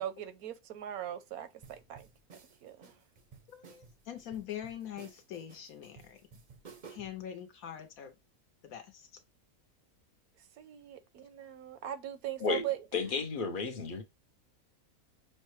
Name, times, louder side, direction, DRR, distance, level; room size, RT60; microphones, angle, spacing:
voice 1, 0.0-2.1 2.6-2.9 10.6-12.8, right 12 dB, 80° right, 1.1 m, -40 dB
sound 1, 1.6-7.2, right 5 dB, 50° right, 0.5 m, -55 dB
voice 2, 3.5-6.2 6.9-8.1 8.6-9.1, left 10 dB, 75° left, 1.2 m, -43 dB
voice 3, 12.9-14.0, left 5 dB, 50° left, 0.6 m, -32 dB
6.3 x 2.2 x 3.1 m
omnidirectional pair, 1.5 m